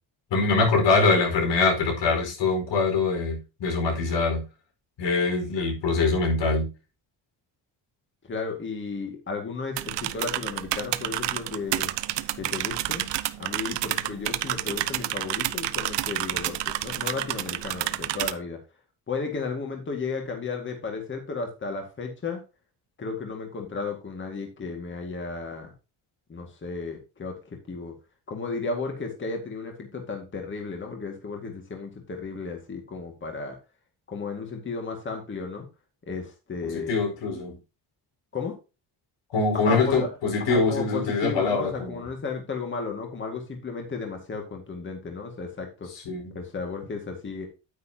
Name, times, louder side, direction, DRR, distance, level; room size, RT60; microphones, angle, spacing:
voice 1, 0.3-4.4 5.0-6.7 36.6-37.6 39.3-42.0 45.9-46.3, left 3 dB, 75° left, 4.8 m, -24 dB
voice 2, 8.3-11.9 12.4-13.1 13.4-18.6 19.1-22.4 23.0-25.7 26.3-27.9 28.3-33.6 34.1-35.7 36.0-37.0 38.3-38.6 39.6-40.1 40.4-45.9 46.3-47.5, left 4 dB, 25° left, 2.1 m, -34 dB
sound 1, 9.8-18.3, right 14 dB, 75° right, 0.9 m, -29 dB
9.9 x 9.5 x 2.9 m
cardioid pair, 155°, 43 cm